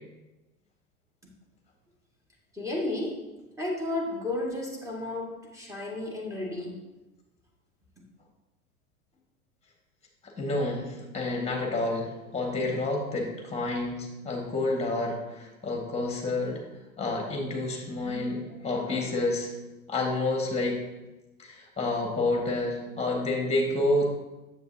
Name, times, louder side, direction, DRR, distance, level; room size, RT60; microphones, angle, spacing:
voice 1, 2.5-3.2 3.6-6.8, left 2 dB, 5° right, -2 dB, 2.1 m, -32 dB
voice 2, 10.4-16.6 17.0-19.5 19.9-20.8 21.4-24.0, left 2 dB, 15° left, 1 dB, 1.9 m, -29 dB
9.1 x 7.7 x 2.9 m, 1.0 s
hypercardioid pair, 90°, 44 cm